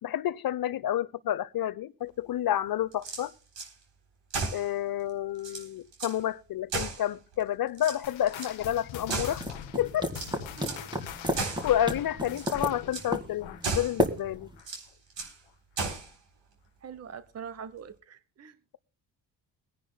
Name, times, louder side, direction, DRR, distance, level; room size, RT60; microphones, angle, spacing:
voice 1, 0.0-3.3 4.5-9.4 9.8-10.2 11.6-14.5, left 11 dB, 45° left, 0.7 m, -30 dB
sound 1, 2.9-3.7 4.3-4.7 5.1-5.2 5.4-6.2 6.7-7.4 7.7-8.5 9.1-9.7 10.1-10.9 11.4-11.7 12.2-12.6 12.9-13.1 13.6-14.0 14.6-15.4 15.8-16.1, right 4 dB, 65° right, 3.7 m, -35 dB
sound 2, 8.0-14.9 15.2-15.5 16.1-16.2 17.0-17.1, left 9 dB, 70° left, 1.1 m, -43 dB
sound 3, 9.1-14.6, equal, 10° right, 1.9 m, -33 dB
voice 2, 10.6-10.9 16.8-18.5, right 7 dB, 30° right, 0.9 m, -43 dB
23.0 x 10.0 x 2.2 m
supercardioid pair, 65°, 48 cm